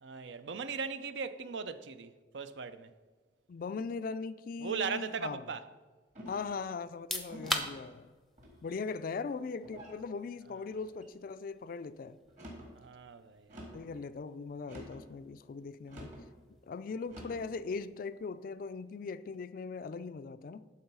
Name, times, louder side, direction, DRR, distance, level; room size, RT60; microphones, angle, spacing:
voice 1, 0.0-2.9 4.6-5.6 12.7-13.8, right 5 dB, 65° right, 0.5 m, -38 dB
voice 2, 3.5-5.4 6.3-8.1 8.6-12.2 13.7-16.1 16.7-20.7, left 4 dB, 45° left, 0.3 m, -40 dB
sound 1, 6.1-6.6 7.3-7.7 8.4-8.9 9.6-10.0 10.7-11.1 12.2-12.7 13.5-13.9 14.6-15.1 15.9-16.2 17.1-17.5, equal, 40° right, 2.0 m, -48 dB
sound 2, 6.9-19.5, left 1 dB, ahead, 0.6 m, -46 dB
11.5 x 4.0 x 5.4 m
head